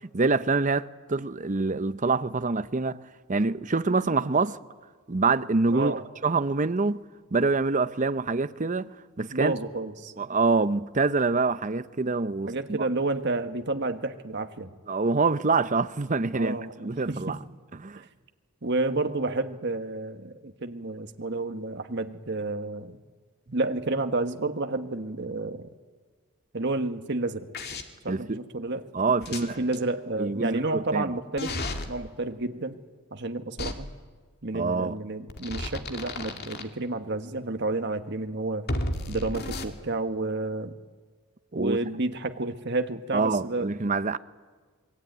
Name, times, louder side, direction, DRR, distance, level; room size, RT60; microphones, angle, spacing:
voice 1, 0.1-3.0 3.3-4.6 5.1-7.0 7.3-9.5 10.2-12.9 14.9-17.4 17.8-18.0 28.1-28.4 28.9-29.6 30.2-31.0 34.5-35.0 41.5-41.8 43.1-44.2, right 3 dB, 35° right, 0.7 m, -26 dB
voice 2, 5.7-6.1 9.3-10.1 12.5-14.7 16.3-17.4 18.0-18.1 18.6-23.0 23.5-25.7 26.5-27.5 28.0-28.9 29.6-31.6 31.9-32.8 33.1-33.9 34.4-38.6 39.1-40.7 41.5-43.7, right 2 dB, 55° right, 1.5 m, -30 dB
sound 1, 27.5-27.8 29.2-29.8 31.4-31.9 33.6-33.7 35.3-36.6 38.7-39.7, left 2 dB, 45° left, 2.3 m, -32 dB
27.0 x 22.5 x 9.3 m
head